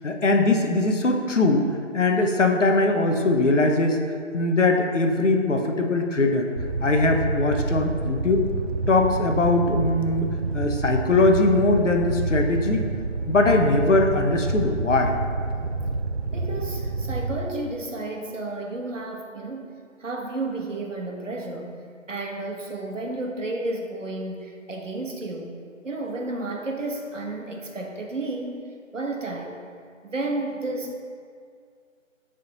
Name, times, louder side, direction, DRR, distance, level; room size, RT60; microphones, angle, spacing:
voice 1, 0.0-1.7 1.9-4.0 4.3-6.5 6.8-8.5 8.9-12.8 13.3-15.1, left 2 dB, 65° left, 3 dB, 0.8 m, -21 dB
Fire, 6.6-17.4, right 3 dB, 55° right, 0.5 m, -28 dB
voice 2, 16.3-19.7 20.0-21.8 22.1-25.6 25.8-28.6 28.9-29.6 30.0-30.9, right 2 dB, 70° right, 1 dB, 1.1 m, -32 dB
8.6 x 3.7 x 3.9 m, 2.1 s
figure-of-eight pair, 175°, 39 cm